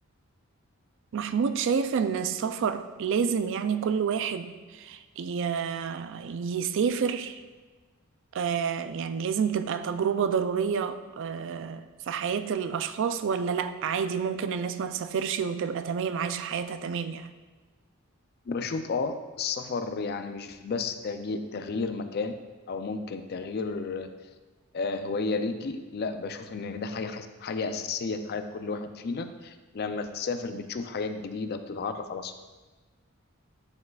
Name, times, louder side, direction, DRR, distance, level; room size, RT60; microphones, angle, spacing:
voice 1, 1.1-7.4 8.3-17.3, right 6 dB, 60° right, 11 dB, 0.3 m, -29 dB
voice 2, 18.5-22.4 22.7-24.1 24.7-32.4, left 4 dB, 45° left, 8 dB, 0.4 m, -32 dB
9.4 x 4.6 x 2.3 m, 1.3 s
head